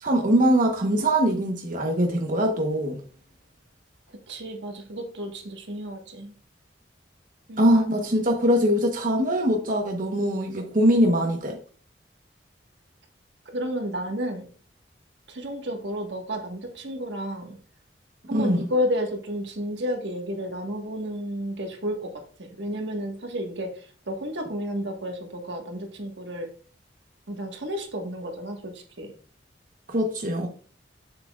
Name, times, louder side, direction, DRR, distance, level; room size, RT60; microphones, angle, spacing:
voice 1, 0.0-3.0 7.6-11.6 18.3-18.6 29.9-30.5, equal, 50° right, 1.0 m, -22 dB
voice 2, 4.3-6.3 7.5-7.8 13.5-14.5 15.3-17.6 18.3-22.1 22.4-26.5 27.3-29.1, equal, 80° right, 1.5 m, -31 dB
7.4 x 7.4 x 2.4 m
head